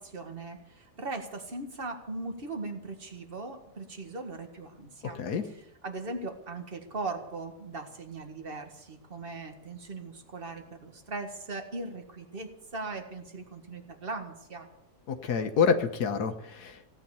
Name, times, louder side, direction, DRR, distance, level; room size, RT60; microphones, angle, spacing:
voice 1, 0.0-14.7, right 3 dB, 35° right, 5 dB, 1.9 m, -39 dB
voice 2, 15.1-16.9, left 6 dB, 80° left, 6 dB, 1.7 m, -27 dB
16.5 x 9.9 x 7.1 m, 0.83 s
omnidirectional pair, 1.7 m